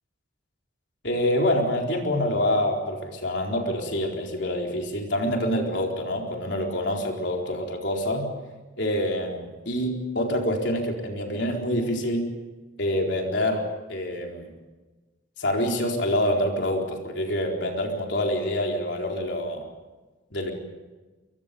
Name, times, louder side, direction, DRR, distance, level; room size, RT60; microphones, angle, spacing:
voice 1, 1.0-8.3 8.8-12.3 12.8-14.5 15.4-19.6 20.3-20.5, left 1 dB, 65° left, 1 dB, 4.3 m, -26 dB
28.5 x 24.0 x 5.4 m, 1.2 s
head